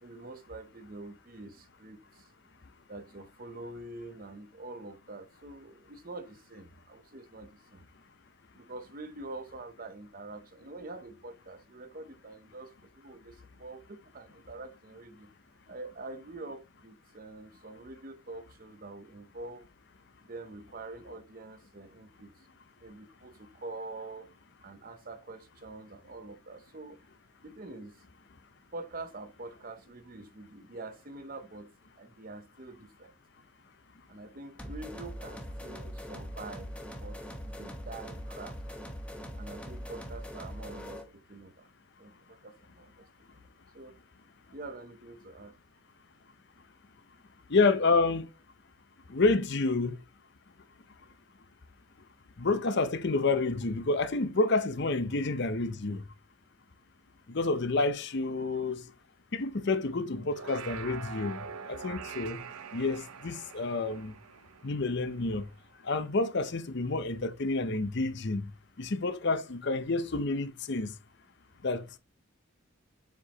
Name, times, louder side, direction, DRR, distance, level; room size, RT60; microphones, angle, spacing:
voice 1, 0.0-2.3 2.9-7.9 8.5-15.3 15.7-19.7 20.3-22.3 22.8-24.3 24.6-27.0 27.4-28.0 28.7-31.7 32.0-33.1 34.1-36.7 37.0-38.6 39.3-41.7 42.0-43.1 43.3-43.5 43.7-44.0 44.5-45.6, right 2 dB, 40° right, 0.7 m, -45 dB
sound 1, 34.6-41.1, equal, 5° left, 0.9 m, -42 dB
voice 2, 47.5-48.3 49.1-50.0 52.4-56.0 57.3-58.8 59.3-62.4 62.7-64.1 64.6-65.5 65.8-68.5 68.8-70.9 71.6-71.8, left 3 dB, 50° left, 0.7 m, -29 dB
sound 2, 60.2-65.7, right 6 dB, 85° right, 0.6 m, -45 dB
7.1 x 4.7 x 2.9 m
head